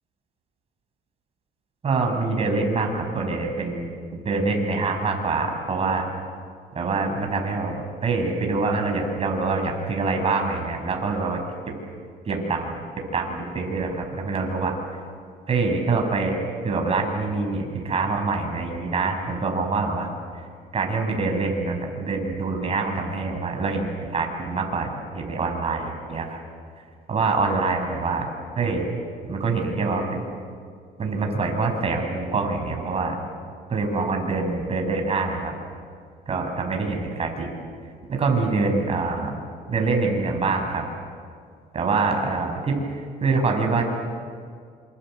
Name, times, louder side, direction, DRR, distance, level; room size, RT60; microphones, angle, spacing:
voice 1, 1.8-6.1 6.7-11.4 12.2-12.8 13.1-14.7 15.5-16.4 16.6-20.1 20.7-26.4 27.1-28.3 28.6-28.9 29.3-30.2 31.0-33.2 33.7-35.5 36.3-37.6 38.1-39.3 39.7-40.8 41.7-42.8 43.2-43.8, right 3 dB, 35° right, 3 dB, 6.6 m, -25 dB
27.0 x 26.5 x 7.9 m, 2.1 s
cardioid pair, 110°, 17 cm